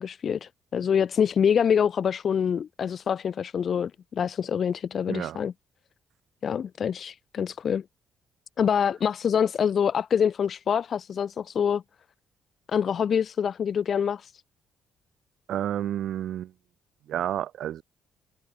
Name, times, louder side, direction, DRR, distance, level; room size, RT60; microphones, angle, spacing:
voice 1, 0.0-5.5 6.4-7.8 8.6-11.8 12.7-14.3, left 7 dB, 55° left, 0.7 m, -25 dB
voice 2, 5.1-5.4 15.5-16.5 17.1-17.8, right 11 dB, 75° right, 1.3 m, -30 dB
cardioid pair, 90°, 0 cm